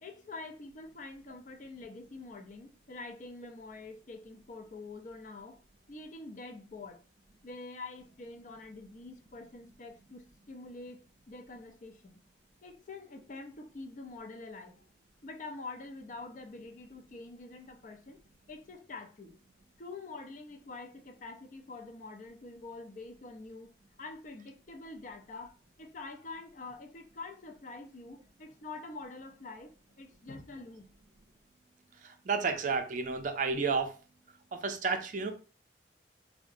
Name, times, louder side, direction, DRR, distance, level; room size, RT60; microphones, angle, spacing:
voice 1, 0.0-5.6 5.9-7.0 7.4-12.2 12.6-14.9 15.2-18.2 18.5-19.3 19.8-30.9, left 3 dB, 45° left, 0.5 m, -46 dB
voice 2, 32.0-34.0 34.5-35.3, right 4 dB, 45° right, 0.4 m, -31 dB
3.7 x 2.1 x 2.5 m
head